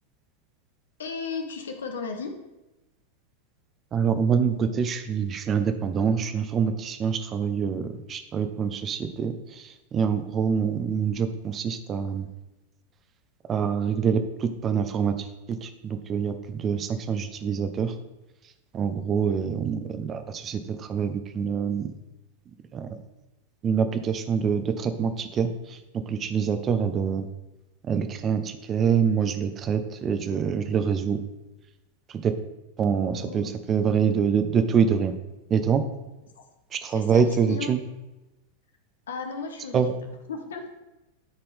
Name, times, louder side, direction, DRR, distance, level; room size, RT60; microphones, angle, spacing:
voice 1, 1.0-2.4 33.1-33.5 36.3-36.4 36.9-37.7 39.1-39.9 40.3-40.7, left 4 dB, 65° left, 5 dB, 0.9 m, -35 dB
voice 2, 3.9-12.3 13.5-15.1 15.5-17.9 18.7-21.9 22.7-23.0 23.6-25.8 26.1-27.3 27.9-31.2 32.1-32.3 32.8-35.2 35.5-35.8 36.7-37.8 39.7-39.9, right 6 dB, 25° right, 9 dB, 0.7 m, -25 dB
12.5 x 4.3 x 3.4 m, 1.0 s
figure-of-eight pair, 90°, 0 cm